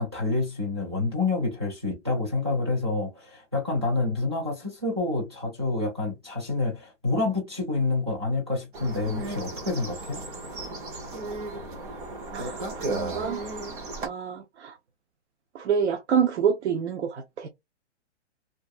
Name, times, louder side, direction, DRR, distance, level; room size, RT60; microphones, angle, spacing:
voice 1, 0.0-10.2, left 3 dB, 25° right, 0.4 m, -28 dB
sound 1, 8.7-14.1, right 2 dB, 45° right, 0.9 m, -35 dB
voice 2, 12.3-13.4 14.0-14.8 15.5-17.5, right 7 dB, 70° right, 0.6 m, -27 dB
2.5 x 2.5 x 2.3 m
hypercardioid pair, 180°, 36 cm